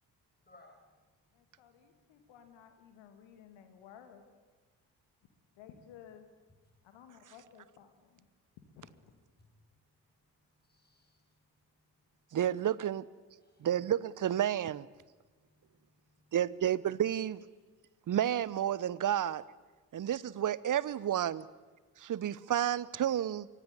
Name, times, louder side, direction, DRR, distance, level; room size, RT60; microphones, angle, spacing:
voice 1, 0.4-2.7 5.4-5.5 6.5-6.7 7.2-7.4 9.4-9.6 9.9-12.4 13.4-13.7 15.2-16.4, left 2 dB, 20° left, 1 dB, 7.5 m, -67 dB
voice 2, 1.4-4.3 5.6-6.3 6.9-8.2 8.8-8.9, left 9 dB, 70° left, 7 dB, 2.6 m, -55 dB
voice 3, 12.3-13.0 13.6-14.9 16.3-17.4 18.1-19.4 19.9-21.4 22.0-23.5, right 10 dB, 40° right, 20 dB, 0.9 m, -31 dB
24.5 x 17.5 x 8.9 m, 1.3 s
figure-of-eight pair, 40°, 48 cm